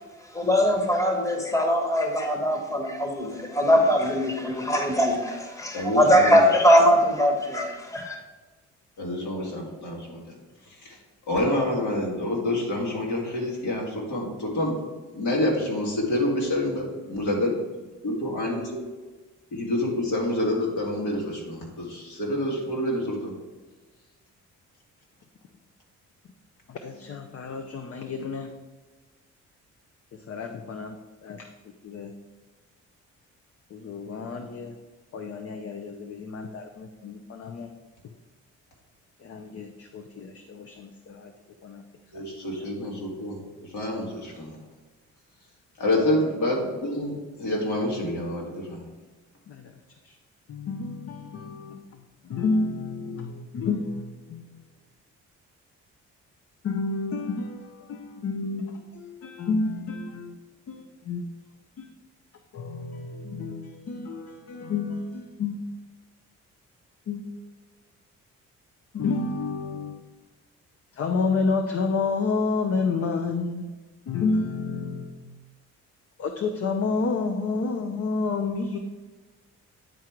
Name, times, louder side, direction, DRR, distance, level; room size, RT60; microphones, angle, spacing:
voice 1, 0.3-8.2, equal, 10° left, 2 dB, 1.3 m, -21 dB
voice 2, 5.7-6.5 9.0-10.4 10.6-11.0 11.3-14.8 15.1-17.6 18.0-18.8 19.5-23.3 42.1-44.6 45.8-48.8, left 1 dB, 75° left, -2 dB, 2.2 m, -27 dB
voice 3, 26.7-28.5 30.3-31.0 31.2-31.5 31.8-32.1 33.7-34.7 35.1-37.7 38.0-38.1 39.2-41.3 41.6-41.8 49.5-49.7 50.0-50.1 50.5-51.8 52.3-54.5 56.6-60.4 60.7-61.2 61.8-61.9 62.5-65.6 67.1-67.4 68.9-70.0 70.9-73.7 74.1-75.3 76.2-78.8, left 4 dB, 50° left, 5 dB, 0.7 m, -30 dB
9.3 x 3.7 x 4.5 m, 1.3 s
cardioid pair, 90°, 30 cm